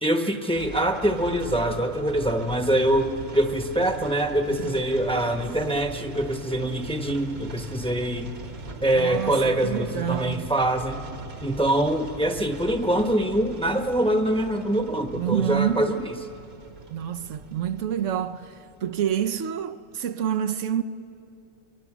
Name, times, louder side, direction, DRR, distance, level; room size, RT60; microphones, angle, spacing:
voice 1, 0.0-8.3 8.8-11.0 11.4-16.1, right 1 dB, 5° left, 0.9 m, -24 dB
sound 1, 0.5-19.6, right 2 dB, 55° right, 1.5 m, -41 dB
voice 2, 4.5-4.8 8.9-10.5 15.1-16.0 16.9-20.8, right 9 dB, 75° right, 1.1 m, -28 dB
27.5 x 23.5 x 6.1 m
omnidirectional pair, 1.3 m